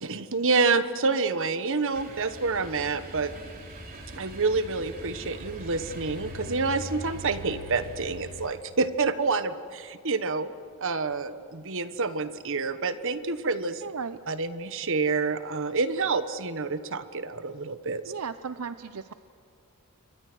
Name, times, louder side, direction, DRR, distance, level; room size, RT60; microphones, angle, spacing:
voice 1, 0.0-3.3 4.2-10.5 10.8-13.9 14.3-18.0, right 4 dB, 60° right, 11 dB, 1.3 m, -28 dB
sound 1, 1.9-8.5, equal, 45° right, 3.9 m, -41 dB
voice 2, 13.8-14.2 18.0-19.1, right 6 dB, 80° right, 11 dB, 0.7 m, -35 dB
29.0 x 24.0 x 6.3 m, 2.4 s
head